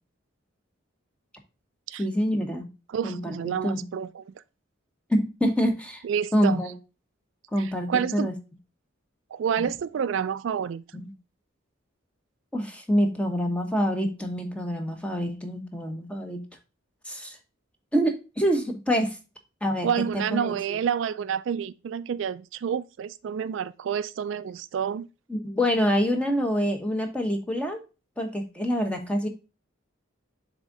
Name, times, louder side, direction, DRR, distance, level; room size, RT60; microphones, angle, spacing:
voice 1, 2.0-2.7 3.0-3.8 5.1-6.0 6.3-6.7 7.5-8.3 10.9-11.1 12.5-16.4 17.0-17.4 17.9-19.2 19.6-19.9 20.1-20.8 25.3-27.8 28.2-29.3, equal, 5° left, 0.9 m, -26 dB
voice 2, 2.9-4.3 6.0-6.6 7.6-8.3 9.3-11.1 19.8-25.1, right 7 dB, 65° right, 0.3 m, -29 dB
7.4 x 3.6 x 3.8 m
head